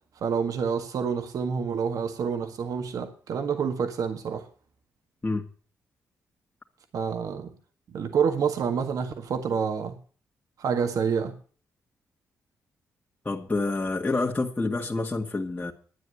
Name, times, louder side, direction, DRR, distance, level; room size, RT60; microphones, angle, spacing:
voice 1, 0.2-4.5 6.9-7.5 7.9-10.0 10.6-11.4, right 6 dB, 70° right, 1.7 m, -28 dB
voice 2, 13.2-15.7, left 3 dB, 25° left, 2.0 m, -28 dB
11.5 x 9.3 x 8.2 m
supercardioid pair, 55°, 6 cm